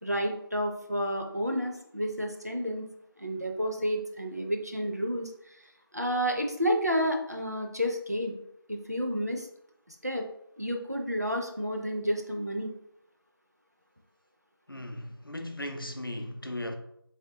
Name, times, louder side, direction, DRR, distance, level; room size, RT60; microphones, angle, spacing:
voice 1, 0.0-2.8 3.2-5.6 5.9-8.4 8.7-9.5 9.9-10.2 10.6-12.7, equal, 40° right, 0.5 m, -30 dB
voice 2, 14.7-16.8, left 1 dB, 60° left, 0.5 m, -37 dB
3.4 x 3.1 x 2.8 m
figure-of-eight pair, 180°, 13 cm